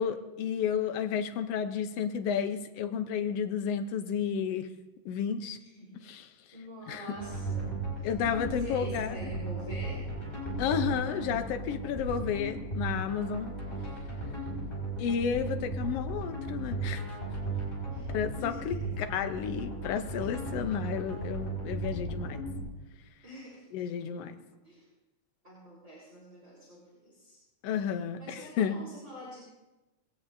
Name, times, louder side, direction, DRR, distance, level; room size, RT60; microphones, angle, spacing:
voice 1, 0.0-4.7 5.0-5.6 6.1-6.3 6.9-7.0 8.0-9.3 10.6-13.5 15.0-17.0 18.1-22.4 23.7-24.3 27.6-28.8, left 7 dB, 70° left, 8 dB, 1.7 m, -32 dB
voice 2, 5.6-6.0 6.5-8.1 8.5-10.1 17.8-18.1 18.4-19.1 23.2-24.3 24.6-24.8 25.4-27.4 27.8-27.9 28.2-29.4, equal, 25° right, -6 dB, 4.3 m, -46 dB
sound 1, 7.2-22.6, right 2 dB, 15° left, 4.8 m, -36 dB
20.5 x 16.5 x 2.7 m, 1.0 s
omnidirectional pair, 3.3 m